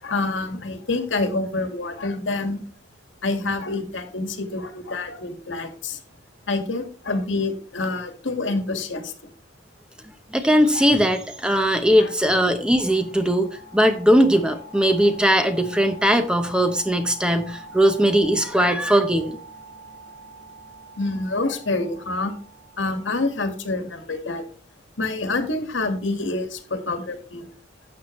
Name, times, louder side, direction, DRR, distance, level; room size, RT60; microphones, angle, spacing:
voice 1, 0.0-2.6 3.2-6.0 6.5-9.1 10.7-10.8 12.0-12.1 18.6-18.7 21.0-22.3 22.8-24.5 25.0-27.5, left 2 dB, 80° left, 7 dB, 1.8 m, -27 dB
voice 2, 10.3-13.5 13.7-19.4, equal, 5° right, 8 dB, 0.8 m, -19 dB
sound 1, 10.5-24.0, equal, 50° right, 4.0 m, -45 dB
12.0 x 8.0 x 3.1 m, 0.43 s
head